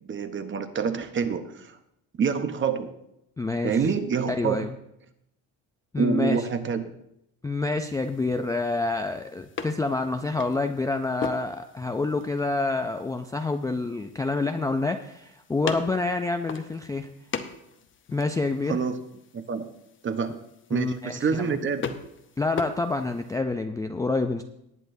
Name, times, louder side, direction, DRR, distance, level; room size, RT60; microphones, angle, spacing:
voice 1, 0.0-1.8 2.2-2.9 3.6-4.7 6.0-6.9 18.7-19.0 19.3-19.7 20.0-20.4 20.7-21.9, right 6 dB, 30° right, 9 dB, 0.9 m, -27 dB
voice 2, 3.4-3.8 4.3-4.7 5.9-6.4 7.4-17.1 18.1-18.8 20.7-21.6 22.4-24.4, left 3 dB, 10° left, 6 dB, 0.3 m, -27 dB
sound 1, 7.8-23.4, left 6 dB, 30° left, 0.8 m, -40 dB
19.0 x 8.8 x 2.7 m, 0.80 s
cardioid pair, 135°, 37 cm